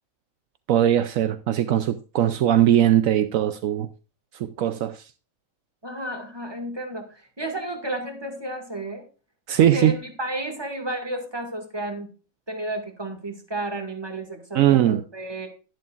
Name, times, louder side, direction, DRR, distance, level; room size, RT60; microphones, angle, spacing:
voice 1, 0.7-3.9 4.3-5.1 9.5-10.0 14.5-15.0, right 11 dB, 75° right, 1.0 m, -20 dB
voice 2, 5.8-9.0 9.6-12.1 12.5-15.5, right 1 dB, 20° right, 2.0 m, -32 dB
11.0 x 11.0 x 2.5 m
omnidirectional pair, 1.4 m